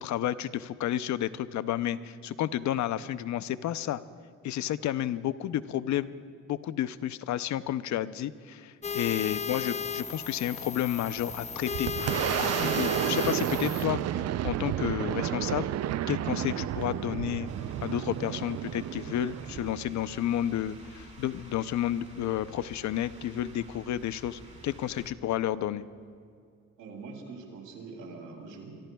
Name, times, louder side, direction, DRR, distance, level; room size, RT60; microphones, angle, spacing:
voice 1, 0.0-4.0 4.4-6.1 6.5-11.9 12.4-14.0 14.4-15.7 16.1-17.5 17.8-25.8, left 11 dB, 70° left, 14 dB, 0.6 m, -31 dB
sound 1, 8.8-13.8, left 6 dB, 25° left, 0.5 m, -35 dB
Boom, 11.2-20.6, right 12 dB, 55° right, 0.5 m, -31 dB
sound 2, 17.5-25.1, right 2 dB, 20° right, 2.6 m, -51 dB
voice 2, 26.8-28.9, right 4 dB, 90° right, 2 dB, 3.0 m, -44 dB
24.0 x 23.5 x 2.3 m, 2.2 s
cardioid pair, 90°, 30 cm